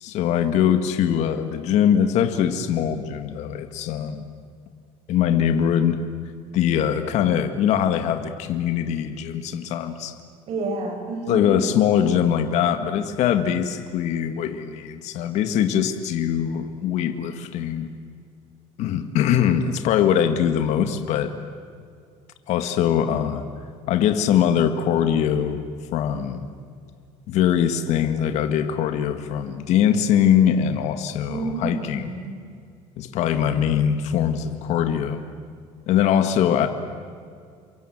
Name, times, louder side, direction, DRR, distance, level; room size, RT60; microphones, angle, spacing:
voice 1, 0.0-4.2 5.1-6.0 6.5-10.1 11.3-18.0 18.8-21.3 22.5-23.4 23.9-25.6 25.9-26.5 27.3-32.1 33.0-35.2 35.9-36.7, left 9 dB, 65° left, 8 dB, 1.9 m, -22 dB
voice 2, 10.5-11.5 31.3-32.4, right 2 dB, 50° right, 3 dB, 6.9 m, -29 dB
29.0 x 23.5 x 8.0 m, 2.2 s
cardioid pair, 135°, 13 cm